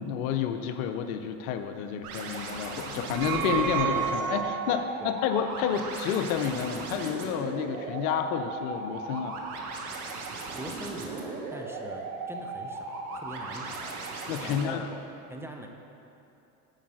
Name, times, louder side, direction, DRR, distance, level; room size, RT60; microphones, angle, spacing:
voice 1, 0.0-9.4 14.3-14.9, left 8 dB, 70° left, 8 dB, 0.7 m, -30 dB
sound 1, 2.0-14.6, right 3 dB, 80° right, 1.2 m, -37 dB
sound 2, 2.9-4.9, right 7 dB, 60° right, 0.7 m, -30 dB
voice 2, 4.7-5.1 10.5-15.0 15.3-15.7, right 1 dB, 5° right, 2 dB, 0.7 m, -43 dB
9.0 x 4.7 x 6.2 m, 2.8 s
hypercardioid pair, 85°, 43 cm